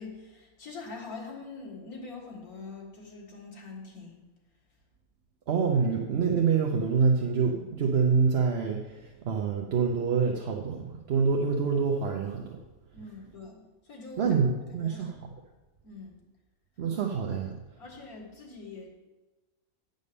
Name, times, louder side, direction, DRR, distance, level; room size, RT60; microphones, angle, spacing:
voice 1, 0.0-4.2 12.9-14.3 14.7-15.1 15.8-16.2 17.7-18.9, left 3 dB, 90° left, -3 dB, 2.3 m, -44 dB
voice 2, 5.5-12.6 14.2-15.2 16.8-17.6, right 5 dB, 55° right, 2 dB, 0.9 m, -26 dB
9.7 x 5.3 x 6.8 m, 1.2 s
omnidirectional pair, 1.5 m